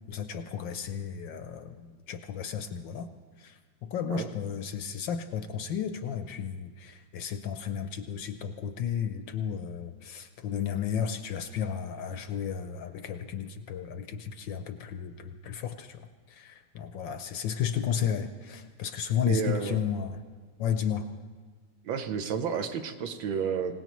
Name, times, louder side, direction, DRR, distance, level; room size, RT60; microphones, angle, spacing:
voice 1, 0.1-3.1 3.4-3.6 3.9-16.0 16.3-20.2 20.6-21.1, left 8 dB, 70° left, 8 dB, 1.2 m, -33 dB
voice 2, 19.2-19.8 21.8-23.7, right 7 dB, 70° right, 7 dB, 1.5 m, -31 dB
25.5 x 17.5 x 3.1 m, 1.5 s
omnidirectional pair, 2.4 m